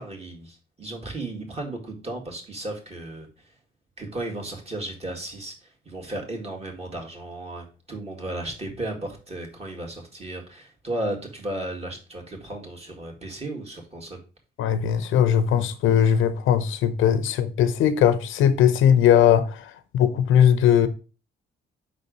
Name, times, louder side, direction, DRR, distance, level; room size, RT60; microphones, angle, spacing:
voice 1, 0.0-3.3 4.0-14.2, right 1 dB, 30° right, 2.1 m, -34 dB
voice 2, 14.6-20.9, left 9 dB, 85° left, 0.7 m, -19 dB
5.2 x 4.1 x 5.3 m
cardioid pair, 90°, 20 cm